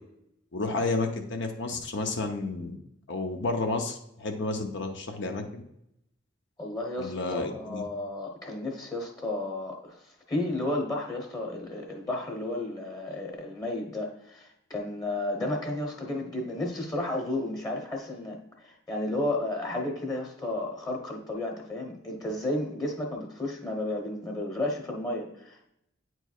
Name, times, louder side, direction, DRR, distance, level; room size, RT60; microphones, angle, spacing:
voice 1, 0.5-2.8 3.1-5.6 7.0-7.8, left 3 dB, 65° left, 3 dB, 0.7 m, -31 dB
voice 2, 6.6-10.0 10.3-25.7, left 1 dB, 20° left, 0 dB, 1.0 m, -32 dB
8.9 x 4.6 x 2.3 m, 0.80 s
head